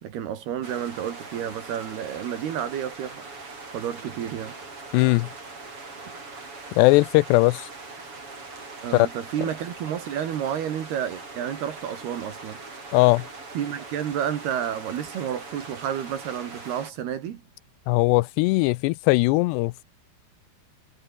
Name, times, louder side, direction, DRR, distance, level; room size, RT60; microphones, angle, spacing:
voice 1, 0.0-4.6 8.8-12.6 13.6-17.4, right 9 dB, 70° right, 4.0 m, -31 dB
sound 1, 0.6-16.9, right 3 dB, 30° right, 6.6 m, -41 dB
voice 2, 4.9-5.3 6.8-7.7 8.9-9.1 12.9-13.3 17.9-19.8, left 22 dB, 85° left, 2.7 m, -19 dB
omnidirectional pair, 4.8 m